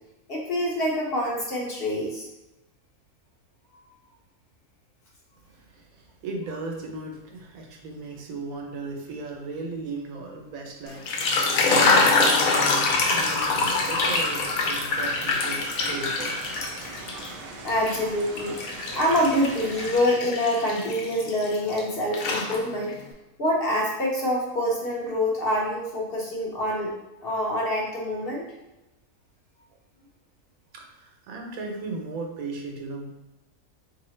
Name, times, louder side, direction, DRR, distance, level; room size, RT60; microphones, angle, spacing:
voice 1, 0.3-2.3 3.7-3.8 17.6-18.6 18.9-23.0 23.4-26.9 27.2-28.4, left 1 dB, 50° left, -3 dB, 0.8 m, -26 dB
voice 2, 5.5-16.5 30.7-33.1, right 3 dB, 85° right, 2 dB, 1.1 m, -37 dB
sound 1, 10.9-17.3 17.7-21.8 22.1-23.0, left 3 dB, 80° left, 1.0 m, -25 dB
sound 2, 12.8-20.0, right 3 dB, 65° right, 0.6 m, -41 dB
3.8 x 2.7 x 3.1 m, 0.97 s
omnidirectional pair, 1.4 m